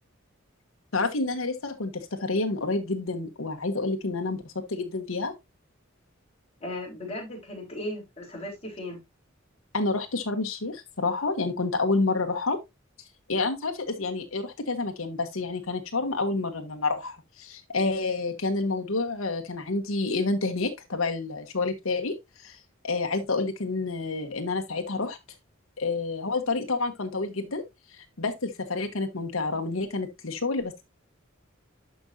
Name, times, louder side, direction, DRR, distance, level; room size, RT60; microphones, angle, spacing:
voice 1, 0.9-4.4 4.7-5.3 9.7-12.6 13.3-22.1 22.4-22.6 22.8-25.2 25.8-27.6 28.2-30.8, left 3 dB, 85° left, 1.2 m, -29 dB
voice 2, 6.6-9.0, left 1 dB, 30° left, 3.8 m, -36 dB
11.5 x 5.3 x 2.6 m
head